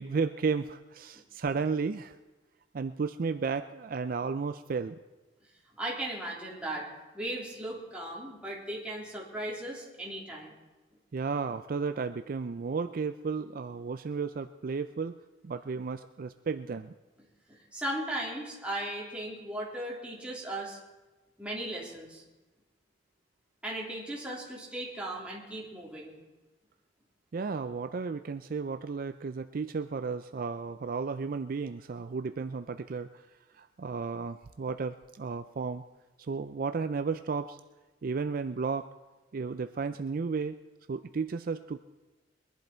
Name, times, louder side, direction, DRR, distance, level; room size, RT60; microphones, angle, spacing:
voice 1, 0.0-2.2 2.7-5.0 11.1-15.2 15.4-16.9 27.3-33.2 33.5-35.8 36.2-37.6 38.0-38.9 39.3-40.6 40.9-41.8, right 5 dB, 50° right, 9 dB, 0.4 m, -33 dB
voice 2, 5.8-6.8 7.1-10.6 17.5-20.8 21.4-22.2 23.6-26.1, right 1 dB, 5° right, -5 dB, 3.3 m, -37 dB
22.0 x 11.5 x 4.4 m, 1.1 s
head